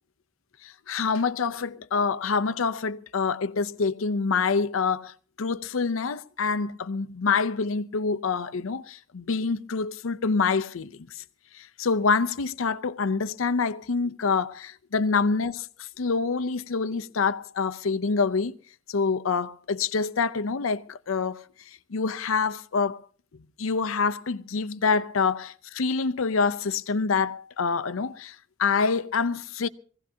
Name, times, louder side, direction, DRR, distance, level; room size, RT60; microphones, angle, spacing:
voice 1, 0.6-10.9 11.5-18.6 18.9-21.5 21.9-23.0 23.6-29.7, left 5 dB, 80° left, 0.6 m, -26 dB
23.5 x 16.5 x 2.8 m
head